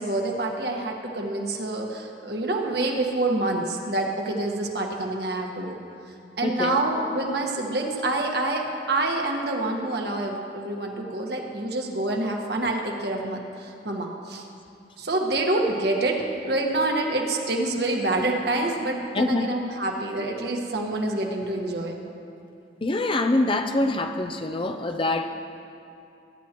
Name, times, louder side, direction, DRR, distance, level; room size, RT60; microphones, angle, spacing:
voice 1, 0.0-5.8 6.4-14.4 15.0-22.0, right 2 dB, 60° right, 1 dB, 1.5 m, -27 dB
voice 2, 6.4-6.8 19.1-19.5 22.8-25.3, left 2 dB, 30° left, 6 dB, 0.5 m, -25 dB
22.5 x 10.5 x 3.0 m, 2.6 s
head